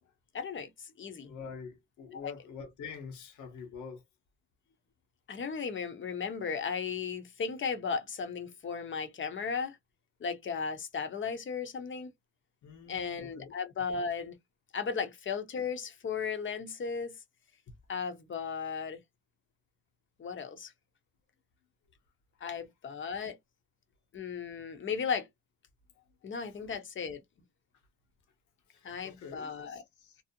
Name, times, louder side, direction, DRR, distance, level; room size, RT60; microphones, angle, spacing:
voice 1, 0.3-1.3 2.2-2.3 5.3-9.8 10.2-12.1 12.9-14.4 14.7-17.2 17.9-19.0 20.2-20.7 22.4-23.4 24.1-25.3 26.2-27.2 28.8-29.8, left 6 dB, 40° left, 0.8 m, -35 dB
voice 2, 1.2-4.1 12.6-13.5 22.3-22.4 25.9-26.1 26.4-26.6 28.7-30.2, left 5 dB, 75° left, 1.1 m, -46 dB
2.6 x 2.0 x 2.6 m
cardioid pair, 90°, 30 cm